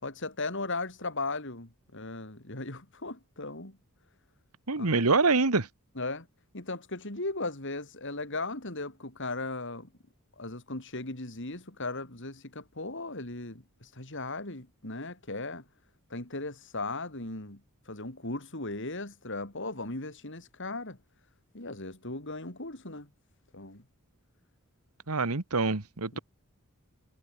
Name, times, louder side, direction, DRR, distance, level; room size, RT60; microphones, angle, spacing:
voice 1, 0.0-3.8 4.7-5.0 6.0-6.3 6.5-9.9 10.4-15.6 16.1-21.0 21.5-23.1 23.5-23.8 26.1-26.2, left 2 dB, 55° left, 4.2 m, -37 dB
voice 2, 4.7-5.7 25.1-26.2, right 3 dB, 80° right, 1.7 m, -25 dB
head